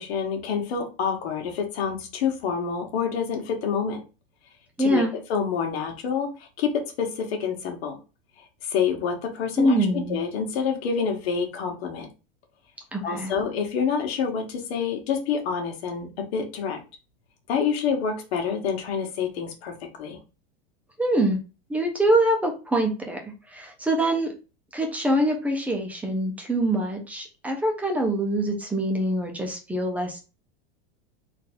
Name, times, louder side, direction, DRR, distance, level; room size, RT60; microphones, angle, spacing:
voice 1, 0.0-4.0 4.8-5.0 5.3-6.3 6.6-6.7 7.0-8.0 8.7-12.1 13.0-16.8 17.5-19.7 20.0-20.2, left 6 dB, 80° left, 2 dB, 1.4 m, -27 dB
voice 2, 4.8-5.1 9.6-10.2 12.9-13.4 21.0-21.4 21.7-23.2 23.5-24.3 24.7-30.2, right 1 dB, 5° right, 2 dB, 0.7 m, -24 dB
3.9 x 2.6 x 3.6 m, 0.32 s
supercardioid pair, 155°, 31 cm